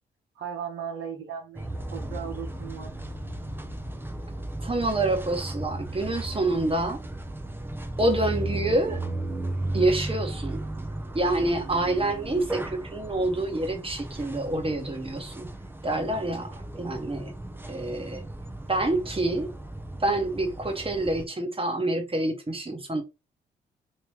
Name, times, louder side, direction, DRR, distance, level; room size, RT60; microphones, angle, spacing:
voice 1, 0.3-2.9, right 7 dB, 70° right, 1.4 m, -37 dB
sound 1, 1.5-21.2, right 1 dB, 10° right, 0.8 m, -35 dB
voice 2, 4.6-7.0 8.0-9.0 9.7-10.6 11.1-15.5 15.8-17.3 17.7-18.2 18.7-19.5 20.0-23.0, right 2 dB, 25° right, 1.4 m, -27 dB
3.2 x 2.9 x 3.4 m
hypercardioid pair, 45°, 21 cm